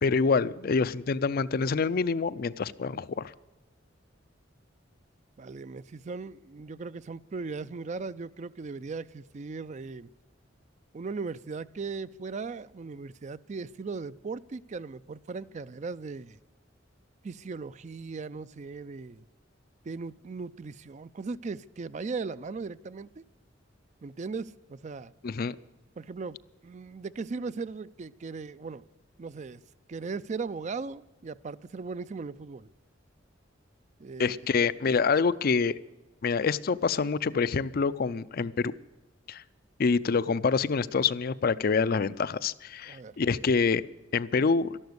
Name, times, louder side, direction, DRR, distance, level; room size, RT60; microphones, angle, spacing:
voice 1, 0.0-3.3 25.2-25.6 34.2-35.7 36.2-38.7 39.3-39.4 39.8-43.8 44.1-44.8, left 5 dB, 50° left, 15 dB, 0.5 m, -26 dB
voice 2, 5.4-10.1 10.9-16.4 17.2-19.2 19.9-23.2 24.0-25.1 26.0-26.4 26.6-28.9 29.2-29.6 29.9-32.7 34.0-34.6 42.9-43.2, right 4 dB, 40° right, 16 dB, 0.4 m, -38 dB
12.5 x 12.0 x 8.0 m, 1.1 s
head